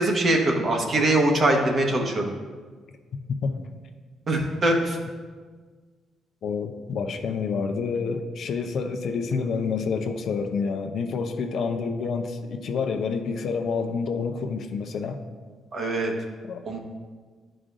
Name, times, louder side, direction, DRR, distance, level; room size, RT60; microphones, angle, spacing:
voice 1, 0.0-2.3 4.3-5.0 15.7-16.1 16.6-16.8, right 1 dB, 45° right, 1 dB, 1.1 m, -22 dB
voice 2, 6.4-15.2 16.4-16.6, left 5 dB, 65° left, 6 dB, 0.6 m, -28 dB
11.0 x 5.0 x 2.5 m, 1.5 s
cardioid pair, 90°, 0 cm